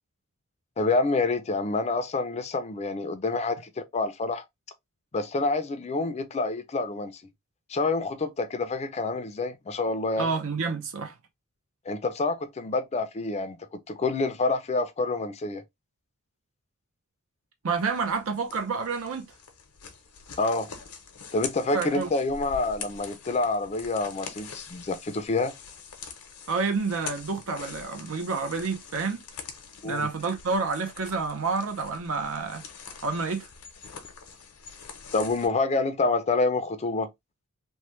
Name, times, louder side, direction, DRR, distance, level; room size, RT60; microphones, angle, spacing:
voice 1, 0.8-4.4 5.1-7.1 7.7-10.3 11.9-13.6 13.9-15.6 20.4-20.7 21.3-25.5 29.8-30.1 35.1-37.1, left 3 dB, 30° left, 0.4 m, -27 dB
voice 2, 10.2-11.1 17.6-19.3 21.7-22.1 26.5-29.2 29.8-32.7 33.0-33.5, right 4 dB, 65° right, 0.6 m, -29 dB
sound 1, 17.7-35.5, left 6 dB, 85° left, 0.8 m, -44 dB
3.0 x 2.2 x 3.0 m
head